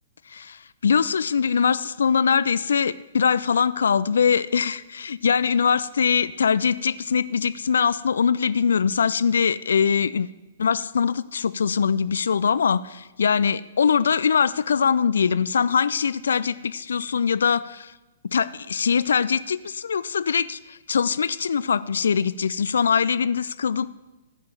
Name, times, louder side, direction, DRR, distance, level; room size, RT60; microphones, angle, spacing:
voice 1, 0.3-10.3 10.6-17.9 18.2-23.9, left 6 dB, 65° left, 16 dB, 0.3 m, -22 dB
14.5 x 5.1 x 6.9 m, 1.1 s
figure-of-eight pair, 115°, 0 cm